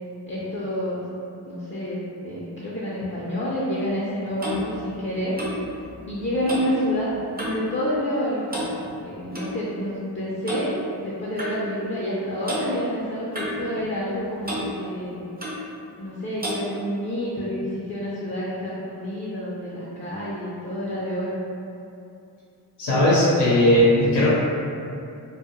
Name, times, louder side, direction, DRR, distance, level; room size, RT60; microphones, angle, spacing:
voice 1, 0.3-1.0 1.4-5.4 6.1-8.4 9.0-15.3 16.0-21.4, equal, 30° left, -7 dB, 0.5 m, -28 dB
Clock, 3.8-7.7 8.0-8.2 8.5-9.5 10.5-10.7 11.4-11.5 12.4-12.7 13.3-14.2 14.4-14.7 15.4-15.6 16.4-16.6, equal, 25° right, 0.6 m, -32 dB
voice 2, 22.8-24.3, left 1 dB, 85° left, -9 dB, 0.7 m, -17 dB
2.3 x 2.0 x 2.9 m, 2.6 s
cardioid pair, 60°, 41 cm